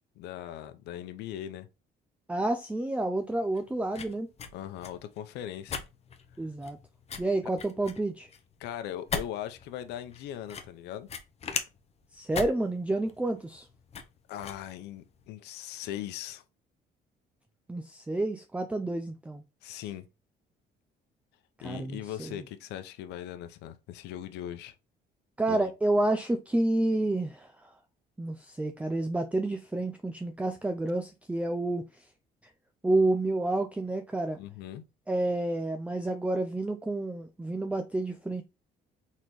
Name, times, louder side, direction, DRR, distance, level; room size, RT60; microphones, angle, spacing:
voice 1, 0.2-1.7 4.5-5.8 8.6-11.1 14.3-16.4 19.6-20.1 21.6-24.7 25.5-25.7 34.4-34.8, left 11 dB, 85° left, 0.7 m, -39 dB
voice 2, 2.3-4.3 6.4-6.8 7.2-8.3 12.1-13.7 17.7-19.4 19.7-19.8 21.6-22.4 25.4-27.7 28.2-32.0 32.8-34.4 35.1-38.4, right 2 dB, 10° right, 0.5 m, -29 dB
sound 1, 3.2-15.3, left 6 dB, 40° left, 0.8 m, -40 dB
4.2 x 4.1 x 3.1 m
cardioid pair, 110°, 17 cm